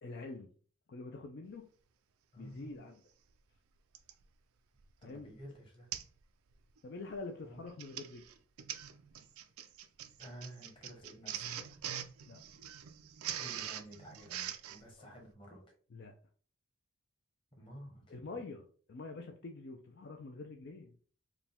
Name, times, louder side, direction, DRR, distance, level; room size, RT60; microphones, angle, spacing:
voice 1, 0.0-0.5 0.9-1.7 2.4-3.0 5.0-5.3 6.8-8.2 12.2-12.4 15.0-15.2 15.9-16.1 18.1-18.6 18.9-20.9, left 3 dB, 50° left, 4 dB, 0.4 m, -46 dB
voice 2, 2.3-2.9 5.0-5.9 7.4-7.6 10.2-11.8 13.4-15.6 17.6-18.2, equal, 25° left, 0 dB, 1.2 m, -52 dB
Printer, 2.8-2.9 3.9-4.2 4.8-5.0 5.3-5.4 5.9-6.2 6.5-6.8 7.6-14.8, right 10 dB, 85° right, 0.4 m, -43 dB
4.8 x 2.2 x 3.4 m, 0.43 s
head